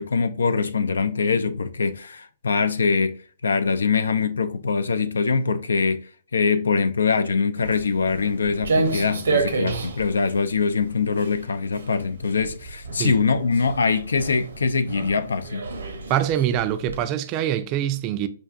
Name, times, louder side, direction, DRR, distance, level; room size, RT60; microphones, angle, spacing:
voice 1, 0.0-3.2 3.4-6.0 6.3-15.6, left 5 dB, 80° left, 0.3 m, -23 dB
Walk footsteps, 7.6-17.0, right 3 dB, 80° right, 0.7 m, -30 dB
voice 2, 16.1-18.3, right 11 dB, 35° right, 0.4 m, -24 dB
5.5 x 2.5 x 2.3 m
hypercardioid pair, 125°, 0 cm